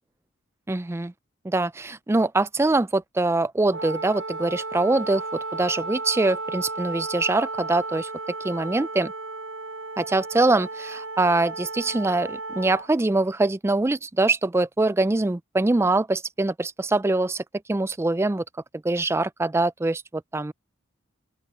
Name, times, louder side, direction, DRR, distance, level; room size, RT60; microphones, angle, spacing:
voice 1, 0.7-1.1 1.4-8.1 8.4-9.1 10.0-17.4 17.7-18.4 18.8-20.5, right 2 dB, 10° right, 0.3 m, -23 dB
Wind instrument woodwind instrument, 3.7-12.9, right 3 dB, 70° right, 0.7 m, -34 dB
open air
head